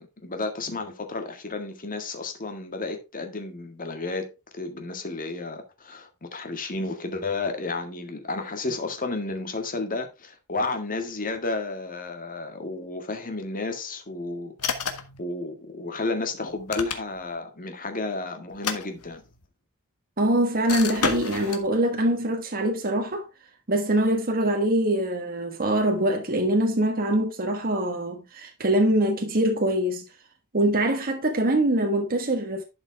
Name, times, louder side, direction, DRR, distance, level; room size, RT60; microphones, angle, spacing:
voice 1, 0.0-14.5 14.9-19.2, left 3 dB, 40° left, 1.9 m, -32 dB
sound 1, 14.6-15.2 16.5-17.4 18.5-19.5 20.7-21.7, left 5 dB, 85° left, 1.5 m, -30 dB
voice 2, 20.2-23.3 23.7-30.0 30.5-32.6, right 1 dB, 40° right, 1.4 m, -23 dB
11.5 x 5.9 x 3.4 m
head